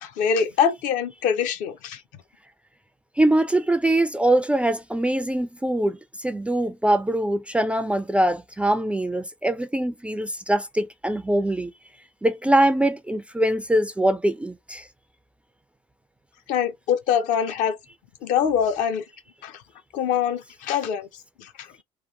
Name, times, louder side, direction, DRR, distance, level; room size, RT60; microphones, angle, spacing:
voice 1, 0.0-2.0 16.5-17.8 18.2-19.0 19.4-19.6 19.9-21.1 21.4-21.7, left 8 dB, 55° left, 0.5 m, -24 dB
voice 2, 3.2-11.7 12.2-14.9, right 1 dB, 5° right, 0.3 m, -23 dB
2.9 x 2.3 x 2.4 m
figure-of-eight pair, 55°, 16 cm